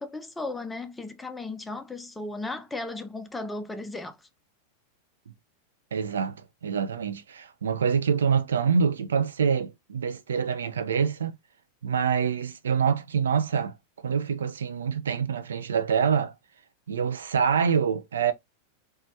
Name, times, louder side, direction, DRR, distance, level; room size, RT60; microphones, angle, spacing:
voice 1, 0.0-4.3, left 2 dB, 10° left, 0.4 m, -36 dB
voice 2, 5.9-11.4 11.8-13.7 14.0-16.3 16.9-18.3, right 6 dB, 65° right, 0.3 m, -26 dB
3.0 x 2.2 x 2.6 m
figure-of-eight pair, 90°, 0 cm